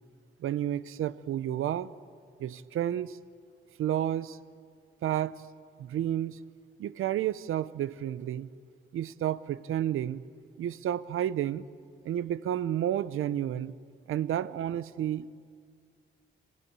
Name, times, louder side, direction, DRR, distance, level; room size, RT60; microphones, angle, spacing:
voice 1, 0.4-1.9 2.4-3.2 3.8-4.4 5.0-5.4 5.8-6.4 6.8-8.5 8.9-10.2 10.6-11.7 12.0-13.7 14.1-15.4, right 11 dB, 90° right, 17 dB, 0.7 m, -31 dB
27.5 x 15.0 x 8.8 m, 2.1 s
cardioid pair, 90°, 21 cm